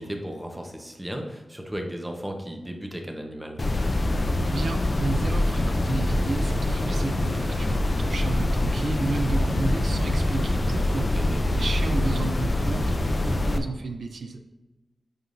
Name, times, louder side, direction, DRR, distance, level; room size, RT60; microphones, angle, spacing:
voice 1, 0.0-3.6 11.1-11.4, equal, 10° right, 2 dB, 1.0 m, -35 dB
sound 1, 3.6-13.6, left 1 dB, 40° left, 0.5 m, -24 dB
voice 2, 4.5-14.4, right 3 dB, 70° right, 6 dB, 0.5 m, -32 dB
9.9 x 3.8 x 2.7 m, 1.2 s
wide cardioid pair, 80°, 0 cm